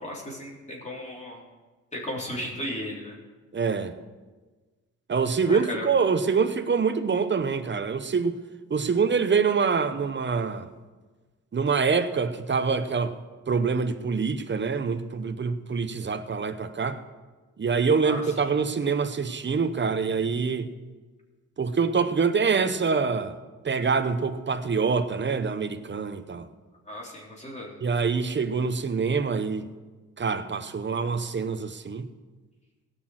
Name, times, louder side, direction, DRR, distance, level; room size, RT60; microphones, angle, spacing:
voice 1, 0.0-1.4 1.9-3.2 5.4-5.9 18.0-18.2 26.9-27.8, left 1 dB, 20° left, 3.6 m, -35 dB
voice 2, 3.5-3.9 5.1-8.4 8.7-10.7 11.5-13.2 13.5-17.0 17.6-20.7 21.6-23.3 23.6-26.5 27.8-29.7 30.2-32.1, right 5 dB, 35° right, 0.9 m, -25 dB
17.5 x 6.3 x 6.4 m
cardioid pair, 90°, 31 cm